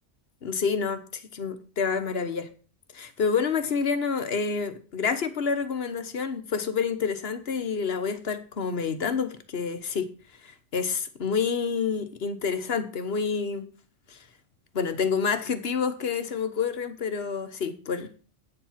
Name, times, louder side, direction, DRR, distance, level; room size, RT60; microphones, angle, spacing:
voice 1, 0.4-2.5 2.9-10.1 10.4-13.7 14.1-14.2 14.7-18.1, left 5 dB, 55° left, 10 dB, 1.3 m, -28 dB
9.1 x 7.4 x 5.8 m, 0.39 s
omnidirectional pair, 1.2 m